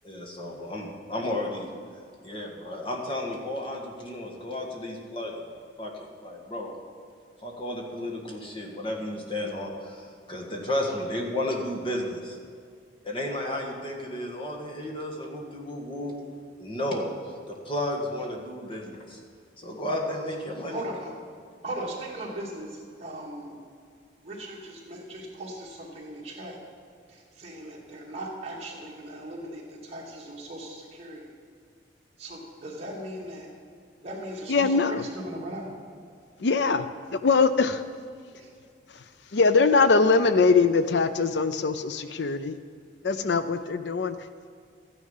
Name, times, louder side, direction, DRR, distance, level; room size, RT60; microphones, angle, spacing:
voice 1, 0.0-1.7 2.2-6.7 7.4-12.4 13.0-16.1 16.6-17.1 17.5-19.2 19.6-20.8, left 1 dB, 30° left, -1 dB, 1.8 m, -33 dB
voice 2, 20.7-21.1 21.6-23.6 24.2-26.6 27.1-31.4 32.2-33.5 34.0-35.7 38.3-38.5, right 1 dB, 35° right, -3 dB, 2.6 m, -38 dB
voice 3, 34.5-35.0 36.4-36.8 37.1-37.8 39.3-42.6 43.0-44.2, left 4 dB, 65° left, 11 dB, 0.5 m, -22 dB
14.0 x 9.9 x 5.6 m, 2.2 s
head